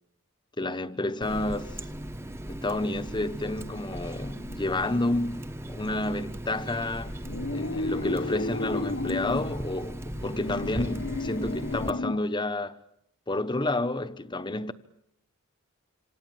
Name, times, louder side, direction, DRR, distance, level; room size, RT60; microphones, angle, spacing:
voice 1, 0.6-1.8 2.5-7.2 7.5-12.8 13.3-14.7, left 2 dB, 20° left, 1.0 m, -30 dB
Water tap faucet, 1.2-11.9, right 1 dB, 10° right, 1.0 m, -38 dB
sound 1, 7.2-9.5 10.1-12.3, left 2 dB, 60° left, 1.1 m, -33 dB
27.0 x 26.5 x 7.7 m
head